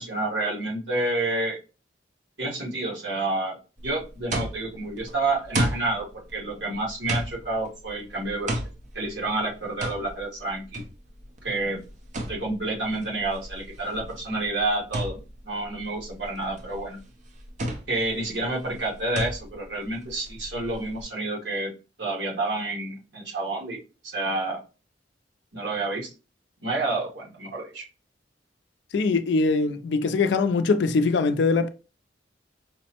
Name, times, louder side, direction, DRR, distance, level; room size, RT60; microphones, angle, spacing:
voice 1, 0.0-1.6 2.4-3.6 3.8-6.1 6.3-8.6 8.9-10.8 11.4-11.8 12.3-17.0 17.9-21.7 22.0-23.8 24.1-24.6 25.5-26.1 26.6-27.9, right 2 dB, 80° right, 1.4 m, -29 dB
sound 1, 3.8-21.0, right 1 dB, 40° right, 0.6 m, -34 dB
voice 2, 28.9-31.7, left 4 dB, 70° left, 0.4 m, -22 dB
5.1 x 2.0 x 2.8 m
head